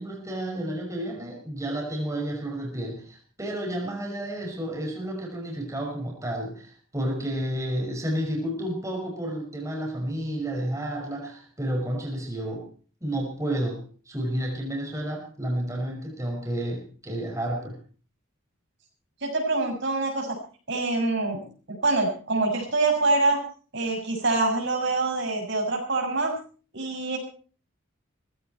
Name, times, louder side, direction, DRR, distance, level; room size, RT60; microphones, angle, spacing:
voice 1, 0.0-12.7 13.0-17.8, right 1 dB, 15° right, 0 dB, 5.8 m, -31 dB
voice 2, 19.2-20.4 20.7-21.4 21.7-23.4 23.7-26.3 26.7-27.2, right 3 dB, 55° right, 2 dB, 7.0 m, -25 dB
19.5 x 16.0 x 4.4 m, 0.41 s
head